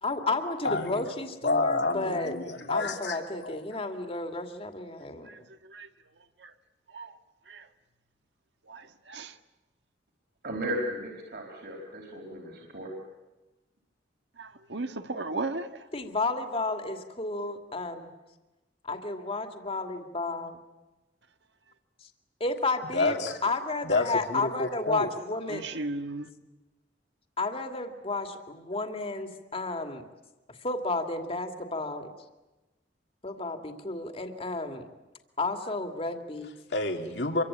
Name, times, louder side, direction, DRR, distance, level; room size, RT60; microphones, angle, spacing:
voice 1, 0.0-2.4 2.7-5.3 15.9-18.1 18.8-20.5 22.4-25.7 27.4-30.0 30.6-32.1 33.2-34.9 35.4-36.5, left 3 dB, 35° left, 2.4 m, -32 dB
voice 2, 0.6-1.0 1.4-3.6 22.9-23.4 23.8-25.1 36.7-37.4, left 2 dB, 75° left, 2.7 m, -29 dB
voice 3, 8.7-9.3 14.4-15.7 25.5-26.3, right 2 dB, 80° right, 1.7 m, -35 dB
voice 4, 10.4-13.0, equal, 65° right, 4.6 m, -35 dB
26.5 x 24.0 x 8.9 m
head